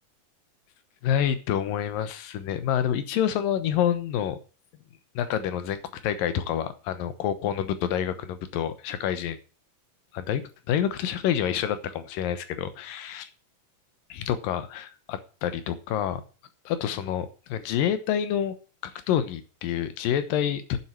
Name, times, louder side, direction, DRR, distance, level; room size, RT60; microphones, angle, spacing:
voice 1, 1.0-4.4 5.2-9.4 10.1-10.4 10.7-13.3 14.1-16.2 16.7-18.6 18.8-20.8, left 9 dB, 90° left, 12 dB, 2.8 m, -28 dB
9.1 x 7.5 x 7.8 m, 0.36 s
omnidirectional pair, 3.8 m